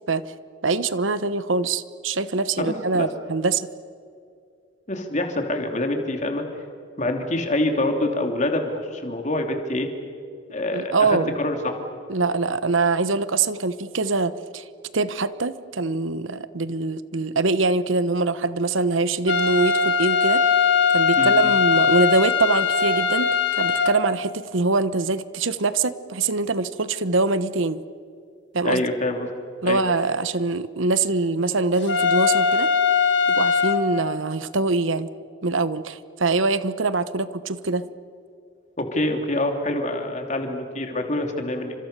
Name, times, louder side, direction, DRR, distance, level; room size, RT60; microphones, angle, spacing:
voice 1, 0.6-3.7 10.7-11.3 12.1-14.6 14.9-20.4 20.9-27.8 28.5-28.8 29.6-32.7 33.3-35.1 35.4-37.8, right 3 dB, 90° right, 14 dB, 1.1 m, -23 dB
voice 2, 2.6-3.1 4.9-6.4 7.0-9.9 10.5-11.8 21.2-21.5 28.6-29.3 29.6-29.8 38.8-41.7, left 1 dB, 40° left, 4 dB, 3.1 m, -26 dB
sound 1, 19.3-23.9 31.9-33.8, left 6 dB, 65° left, 1.8 m, -20 dB
29.5 x 26.0 x 6.8 m, 2.4 s
head